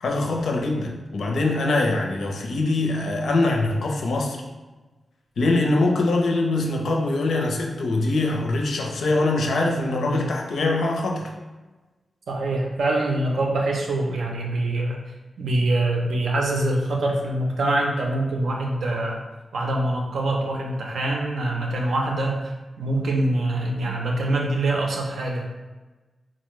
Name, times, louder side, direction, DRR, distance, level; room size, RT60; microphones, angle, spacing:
voice 1, 0.0-4.4 5.4-11.3, left 2 dB, 85° left, 1 dB, 0.5 m, -23 dB
voice 2, 12.3-15.0 15.4-19.2 19.5-25.5, right 2 dB, 90° right, 0 dB, 0.6 m, -24 dB
3.9 x 2.1 x 3.1 m, 1.2 s
wide cardioid pair, 155°, 0 cm